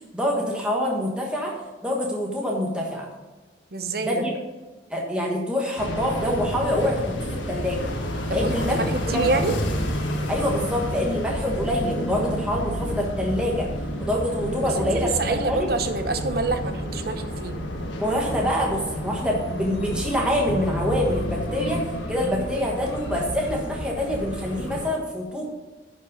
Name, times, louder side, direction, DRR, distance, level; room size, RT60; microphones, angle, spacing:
voice 1, 0.1-1.5 1.8-3.1 4.0-4.4 4.9-7.8 8.3-8.8 9.1-9.3 10.3-13.7 14.0-15.7 18.0-25.5, equal, 5° right, -2 dB, 1.3 m, -26 dB
voice 2, 3.7-4.3 8.3-8.5 8.8-9.5 14.4-17.6, right 3 dB, 55° right, 8 dB, 0.9 m, -27 dB
sound 1, 5.8-24.9, equal, 90° left, 1.5 m, -30 dB
11.0 x 5.3 x 5.3 m, 1.2 s
head